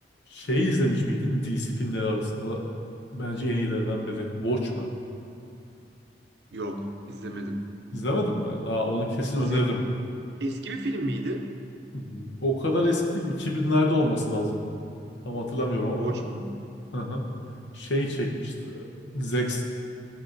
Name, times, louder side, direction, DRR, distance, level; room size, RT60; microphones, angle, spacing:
voice 1, 0.3-2.6 3.1-4.9 7.9-9.8 11.9-14.6 15.2-16.2 16.9-17.3 17.7-18.9 19.1-19.6, left 1 dB, 75° left, 0 dB, 0.9 m, -27 dB
voice 2, 6.5-7.6 9.4-9.7 10.4-11.5 15.9-16.5, right 1 dB, 65° right, 3 dB, 0.7 m, -31 dB
13.0 x 5.5 x 2.6 m, 2.6 s
head